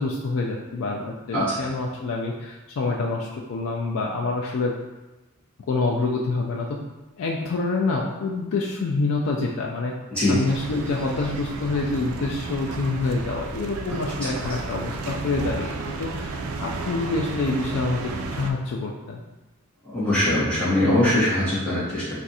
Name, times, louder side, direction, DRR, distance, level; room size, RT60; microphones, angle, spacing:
voice 1, 0.0-4.7 5.6-6.8 7.2-9.9 10.3-19.2, left 3 dB, 70° left, -1 dB, 0.3 m, -27 dB
sound 1, 10.5-18.5, right 3 dB, 80° right, 0.3 m, -33 dB
voice 2, 19.8-22.2, left 1 dB, 5° left, -10 dB, 0.9 m, -22 dB
2.5 x 2.4 x 4.0 m, 1.1 s
head